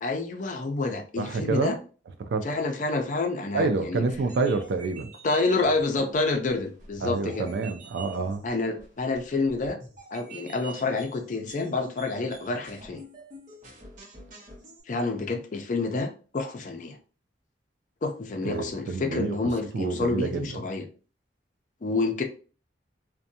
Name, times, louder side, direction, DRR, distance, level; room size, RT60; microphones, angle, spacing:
voice 1, 0.0-1.8 2.4-4.0 5.2-7.5 8.4-9.8 10.1-13.0 14.9-17.0 18.0-20.9 21.8-22.2, left 3 dB, 45° left, 0.4 m, -28 dB
voice 2, 1.2-1.8 2.2-2.5 3.5-5.1 7.0-8.5 18.4-19.4 19.7-20.6, right 3 dB, 75° right, 0.4 m, -28 dB
sound 1, 4.1-14.8, right 2 dB, 45° right, 0.9 m, -48 dB
2.6 x 2.2 x 2.6 m
head